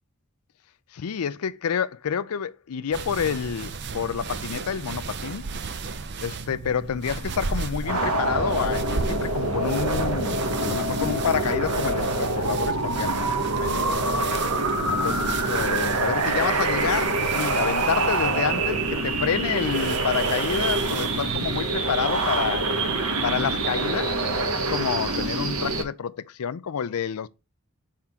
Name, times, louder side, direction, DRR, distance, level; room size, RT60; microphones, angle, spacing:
voice 1, 0.9-5.5 6.2-13.3 13.6-13.8 14.9-22.7 23.2-24.1 24.4-27.3, left 7 dB, 90° left, 0.5 m, -29 dB
sound 1, 2.9-21.7, right 4 dB, 50° right, 0.5 m, -35 dB
sound 2, 7.8-25.8, right 2 dB, 85° right, 1.2 m, -25 dB
5.8 x 3.7 x 4.4 m
head